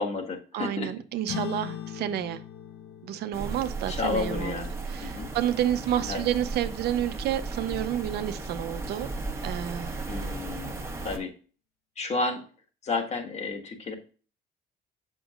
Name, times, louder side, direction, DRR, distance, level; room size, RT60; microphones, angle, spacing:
voice 1, 0.0-0.9 3.9-4.7 5.0-5.3 6.0-6.3 10.1-11.3 12.0-12.4 12.8-13.9, left 3 dB, 40° left, 3 dB, 1.6 m, -31 dB
voice 2, 0.5-2.4 3.0-9.1 9.4-9.9, right 11 dB, 75° right, 11 dB, 0.7 m, -30 dB
sound 1, 1.3-6.1, left 10 dB, 75° left, 1.1 m, -41 dB
sound 2, 3.3-11.2, right 3 dB, 15° right, 1.1 m, -35 dB
7.1 x 6.2 x 2.4 m, 0.39 s
cardioid pair, 110°, 17 cm